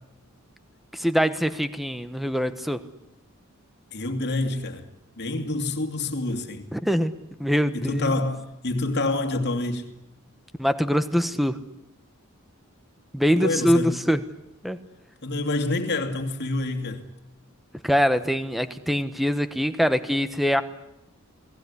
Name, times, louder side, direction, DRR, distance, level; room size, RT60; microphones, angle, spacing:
voice 1, 0.9-2.8 6.7-7.1 7.4-8.2 10.6-11.6 13.1-14.2 14.6-14.8 17.8-20.6, equal, ahead, 1.2 m, -23 dB
voice 2, 3.9-4.9 5.2-6.7 7.7-9.9 13.3-14.0 15.2-17.1, left 2 dB, 50° left, 2.7 m, -27 dB
29.0 x 19.5 x 9.8 m
head